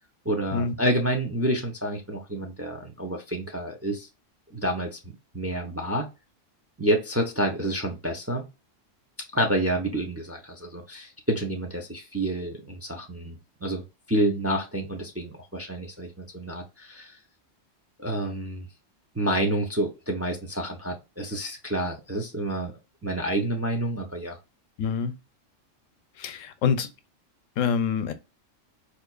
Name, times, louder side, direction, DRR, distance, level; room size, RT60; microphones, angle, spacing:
voice 1, 0.2-4.1 4.5-5.0 5.3-6.1 6.8-8.5 9.3-13.8 14.1-17.2 18.0-18.7 19.1-22.7 23.0-24.4, right 1 dB, 15° right, 0.5 m, -28 dB
voice 2, 24.8-25.2 26.2-26.9 27.6-28.1, left 6 dB, 85° left, 1.0 m, -26 dB
4.4 x 2.6 x 2.3 m
omnidirectional pair, 1.3 m